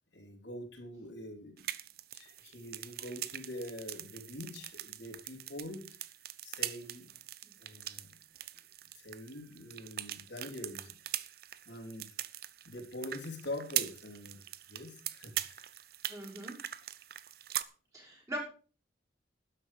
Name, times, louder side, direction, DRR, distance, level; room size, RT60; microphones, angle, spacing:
voice 1, 0.1-1.7 2.1-5.8 6.4-7.1 7.6-8.1 9.0-10.9 11.7-12.1 12.7-14.4 14.7-15.7, left 1 dB, 75° left, 1 dB, 3.5 m, -44 dB
sound 1, 1.6-17.6, right 13 dB, 55° right, 0.7 m, -42 dB
voice 2, 16.1-16.5 17.9-18.4, right 1 dB, 20° right, -2 dB, 6.0 m, -41 dB
13.0 x 10.0 x 5.1 m, 0.38 s
head